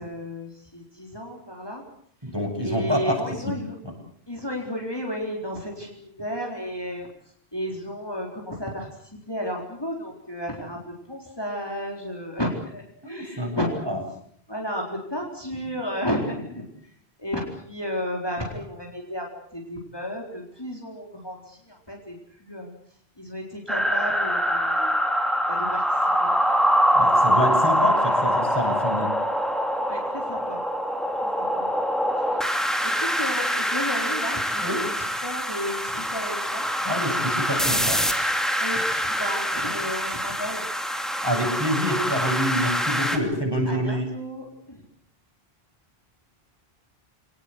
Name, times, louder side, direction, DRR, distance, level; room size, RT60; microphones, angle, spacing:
voice 1, 0.0-1.8 2.5-3.8 4.3-7.1 7.5-13.8 14.5-22.7 23.2-24.9 25.5-26.3 29.9-30.6 31.4-31.7 32.2-32.5 32.8-36.7 38.6-40.7 43.7-44.8, equal, 25° left, 0 dB, 4.3 m, -33 dB
voice 2, 2.2-3.5 13.0-13.5 13.9-14.0 26.9-29.1 34.6-34.8 36.8-38.0 41.2-44.1, equal, 25° right, 1 dB, 7.8 m, -27 dB
sound 1, 23.7-43.2, equal, ahead, 2.7 m, -24 dB
27.5 x 19.0 x 8.2 m, 0.64 s
omnidirectional pair, 1.1 m